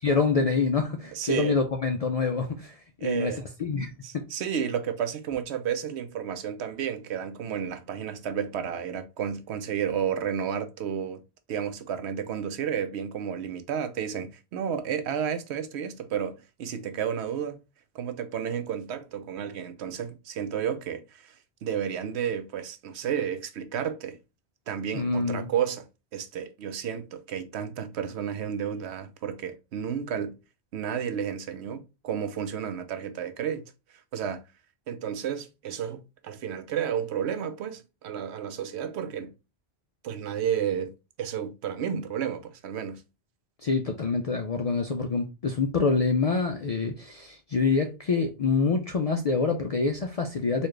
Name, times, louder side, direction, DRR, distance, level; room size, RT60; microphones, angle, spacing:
voice 1, 0.0-3.3 3.6-4.2 24.9-25.5 43.6-50.7, left 4 dB, 60° left, 0.4 m, -26 dB
voice 2, 1.2-1.6 3.0-3.4 4.0-11.2 11.5-17.6 17.9-21.3 21.6-24.2 24.7-25.9 26.1-30.4 30.7-33.7 34.1-34.4 34.9-39.3 40.0-40.9 41.2-43.0, right 8 dB, 80° right, 0.9 m, -31 dB
4.1 x 2.4 x 3.1 m
omnidirectional pair, 1.1 m